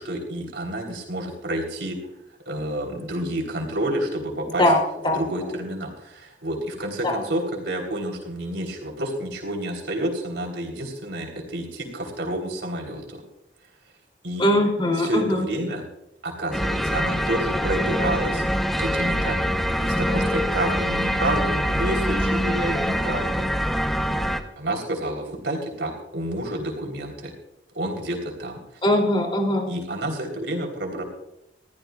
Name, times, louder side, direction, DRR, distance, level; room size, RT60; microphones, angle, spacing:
voice 1, 0.0-2.0 2.5-4.7 5.0-13.2 14.2-14.5 14.9-15.8 16.2-18.4 18.8-23.5 24.0-27.3 27.8-28.6 29.7-31.0, right 1 dB, 90° right, 1 dB, 3.6 m, -29 dB
voice 2, 14.4-15.4 28.8-29.7, left 1 dB, 30° left, 0 dB, 3.0 m, -20 dB
sound 1, 16.5-24.4, equal, ahead, 0.9 m, -24 dB
20.5 x 14.5 x 2.4 m, 0.83 s
head